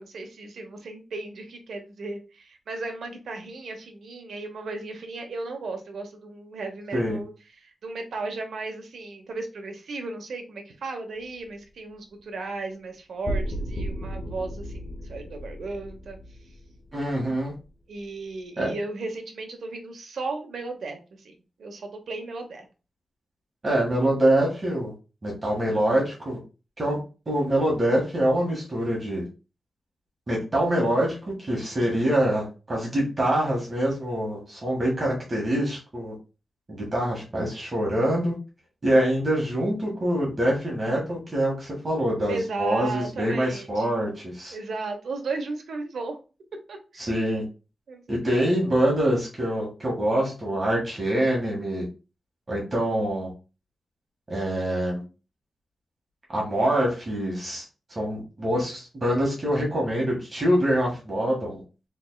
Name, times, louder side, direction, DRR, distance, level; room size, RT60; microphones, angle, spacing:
voice 1, 0.0-7.3 7.6-16.2 17.9-21.3 21.6-22.7 42.3-43.9 44.5-46.2 46.7-47.1 47.9-48.7, right 3 dB, 90° right, 4 dB, 0.9 m, -35 dB
sound 1, 13.2-17.6, equal, 55° left, 1.2 m, -34 dB
voice 2, 16.9-17.5 18.6-18.7 23.6-24.9 25.2-26.4 26.8-27.0 27.3-29.2 30.3-36.1 36.7-38.3 38.8-44.5 47.0-47.4 48.1-51.9 52.5-53.3 54.3-55.0 56.3-57.7 57.9-61.6, right 1 dB, 35° right, -3 dB, 1.6 m, -25 dB
4.1 x 3.4 x 2.2 m, 0.32 s
wide cardioid pair, 110°, 0 cm